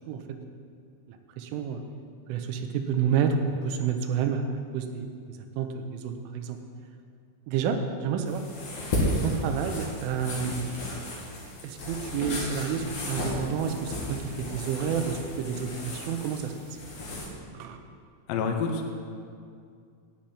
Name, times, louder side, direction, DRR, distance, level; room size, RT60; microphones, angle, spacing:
voice 1, 0.1-0.4 1.1-1.8 2.3-3.4 3.6-5.1 5.6-6.6 7.5-8.5 9.2-10.8 11.6-16.5 17.5-17.8, right 7 dB, 80° right, 6 dB, 3.1 m, -30 dB
sound 1, 8.3-17.3, left 1 dB, 60° left, 1.8 m, -34 dB
voice 2, 18.3-18.9, left 5 dB, 80° left, 3 dB, 2.5 m, -28 dB
10.5 x 5.8 x 8.6 m, 2.3 s
omnidirectional pair, 6.0 m